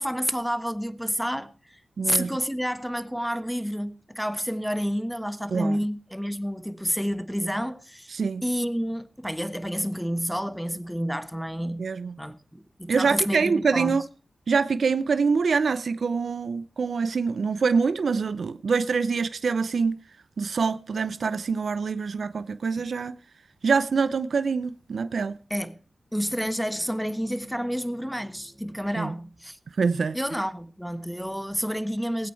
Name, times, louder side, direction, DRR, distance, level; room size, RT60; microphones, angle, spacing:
voice 1, 0.0-1.8 2.0-8.2 8.4-11.9 12.2-14.0 25.5-25.8 26.1-29.6 30.1-32.3, equal, ahead, 1.3 m, -29 dB
voice 2, 2.0-2.3 5.5-5.8 8.1-8.4 11.8-12.1 12.9-14.0 14.5-20.0 20.4-23.2 23.6-25.4 29.0-29.1 29.8-30.2, right 5 dB, 75° right, 0.6 m, -25 dB
19.5 x 8.5 x 4.5 m
cardioid pair, 50°, 0 cm